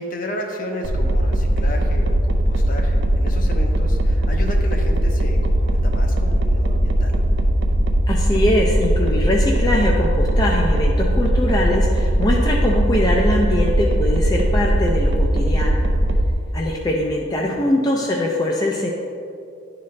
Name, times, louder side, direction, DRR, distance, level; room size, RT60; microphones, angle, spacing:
voice 1, 0.0-7.2 17.4-17.7, left 1 dB, 45° left, 2 dB, 0.7 m, -33 dB
sound 1, 0.8-16.3, right 1 dB, 70° right, 0.6 m, -19 dB
voice 2, 8.1-15.8 16.5-18.9, left 1 dB, 20° left, -2 dB, 0.4 m, -22 dB
10.5 x 4.0 x 3.2 m, 2.6 s
head